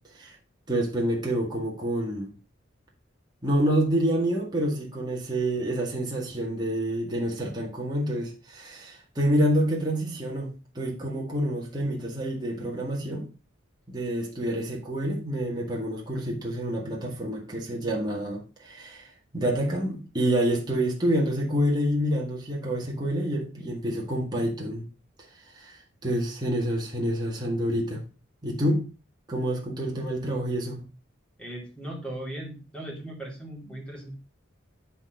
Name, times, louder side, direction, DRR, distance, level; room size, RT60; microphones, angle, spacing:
voice 1, 0.7-2.3 3.4-13.3 13.9-24.9 25.5-28.0 28.4-28.8 29.3-30.8, right 1 dB, 20° right, 1.9 m, -28 dB
voice 2, 31.4-34.1, right 1 dB, 5° left, 2.8 m, -38 dB
10.5 x 4.4 x 5.2 m
head